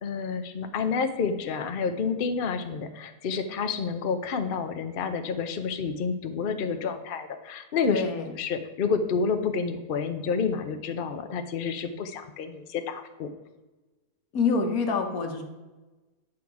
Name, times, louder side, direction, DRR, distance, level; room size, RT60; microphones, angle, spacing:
voice 1, 0.0-8.0 8.4-13.3, left 5 dB, 50° left, 7 dB, 0.6 m, -29 dB
voice 2, 7.9-8.3 14.3-15.4, left 4 dB, 65° left, 4 dB, 1.6 m, -26 dB
8.9 x 6.2 x 4.7 m, 1.2 s
omnidirectional pair, 1.6 m